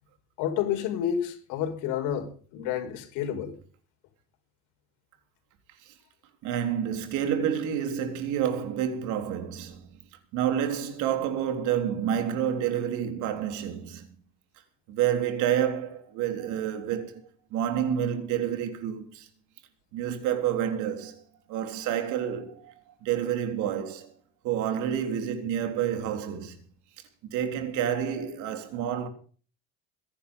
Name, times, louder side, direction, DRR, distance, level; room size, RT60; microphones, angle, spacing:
voice 1, 0.4-3.5, left 9 dB, 80° left, 5.8 m, -30 dB
voice 2, 6.4-9.9 10.3-14.2 14.9-17.2 17.5-19.3 19.9-21.2 21.5-24.2 24.4-26.6 27.2-29.1, right 9 dB, 70° right, 3.7 m, -29 dB
22.0 x 11.5 x 5.5 m
cardioid pair, 160°, 31 cm